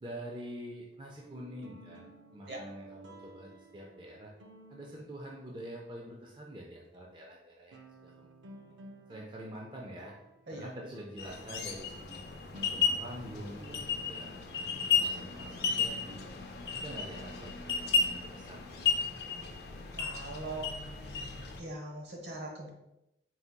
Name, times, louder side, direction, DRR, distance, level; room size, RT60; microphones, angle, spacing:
voice 1, 0.0-4.3 4.7-8.3 8.6-8.7 9.1-10.1 10.5-12.2 12.7-14.3 14.7-16.3 16.7-19.1, equal, 25° right, -1 dB, 0.4 m, -46 dB
sound 1, 0.9-6.2 6.9-7.0 7.7-14.8, right 1 dB, 90° right, 0.5 m, -55 dB
sound 2, 11.2-21.6, left 6 dB, 60° left, 0.5 m, -33 dB
voice 2, 19.9-20.7 21.6-22.7, right 2 dB, 70° right, 1 dB, 0.9 m, -41 dB
4.4 x 4.0 x 2.2 m, 0.88 s
head